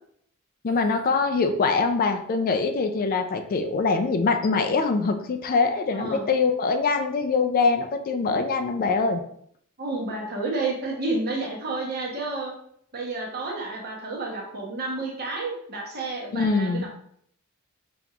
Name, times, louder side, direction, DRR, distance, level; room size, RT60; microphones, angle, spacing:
voice 1, 0.6-9.2 16.3-16.9, left 4 dB, 40° left, 6 dB, 0.4 m, -23 dB
voice 2, 5.9-6.3 9.8-12.5 12.9-16.9, right 3 dB, 45° right, -2 dB, 1.0 m, -30 dB
5.1 x 2.9 x 2.4 m, 0.66 s
head